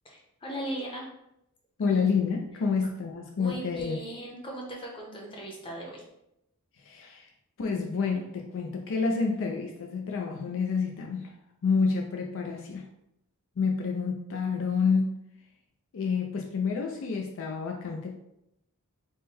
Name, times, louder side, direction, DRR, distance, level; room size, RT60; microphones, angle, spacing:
voice 1, 0.0-1.1 3.4-6.0, right 1 dB, 25° left, -1 dB, 0.8 m, -38 dB
voice 2, 1.8-4.0 6.8-7.3 7.6-11.3 11.6-12.9 13.6-15.2 15.9-18.2, left 5 dB, 60° left, 1 dB, 0.4 m, -29 dB
3.6 x 2.2 x 4.1 m, 0.82 s
head